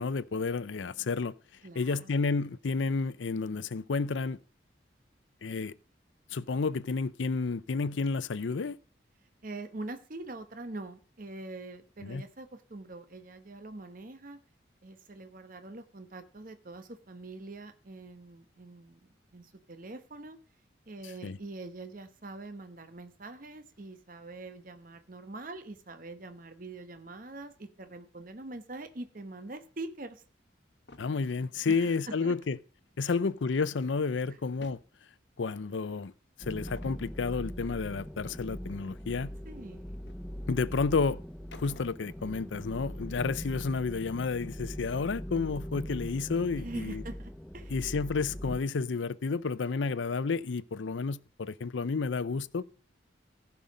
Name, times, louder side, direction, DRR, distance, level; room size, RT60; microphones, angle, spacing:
voice 1, 0.0-1.3 1.8-4.4 5.4-5.7 6.3-8.8 12.0-12.2 21.2-21.4 31.0-32.6 33.0-34.8 35.4-36.1 36.4-39.3 40.5-41.2 41.5-47.0 47.7-52.6, left 4 dB, 80° left, 0.5 m, -31 dB
voice 2, 1.6-2.1 9.4-14.4 14.8-20.4 20.9-30.2 31.7-32.3 33.0-33.1 34.3-34.4 39.4-40.1 46.6-47.8, right 2 dB, 45° right, 1.0 m, -44 dB
sound 1, 30.9-31.2 34.4-34.9 35.7-35.9 36.7-37.0 39.3-39.4 40.1-40.3 41.5-42.2, left 2 dB, 65° left, 1.1 m, -52 dB
sound 2, 36.4-48.6, equal, 5° left, 0.4 m, -41 dB
15.5 x 5.7 x 5.1 m
head